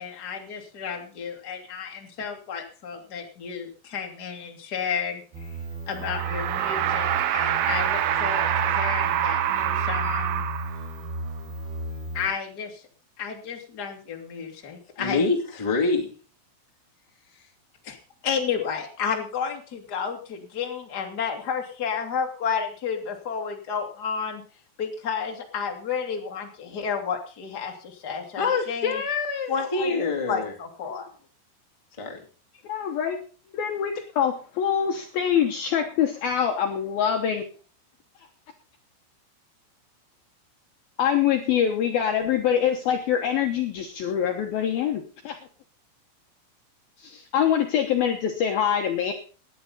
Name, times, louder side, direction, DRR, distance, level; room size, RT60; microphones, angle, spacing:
voice 1, 0.0-5.5 5.9-10.4 12.1-12.8 13.2-15.3 17.8-18.0 18.2-24.4 24.8-29.0 29.5-31.1, left 6 dB, 45° left, 2 dB, 1.3 m, -31 dB
sound 1, 5.3-12.3, right 2 dB, 55° right, 6.5 m, -34 dB
sound 2, 6.0-11.1, right 11 dB, 75° right, 2.3 m, -26 dB
voice 2, 15.0-16.1 28.4-30.5 32.0-32.2, left 4 dB, 60° left, 0 dB, 0.3 m, -26 dB
voice 3, 32.6-33.2 33.5-37.4 41.0-45.4 47.0-49.1, left 9 dB, 75° left, 4 dB, 2.2 m, -24 dB
18.0 x 11.0 x 4.0 m, 0.39 s
omnidirectional pair, 5.8 m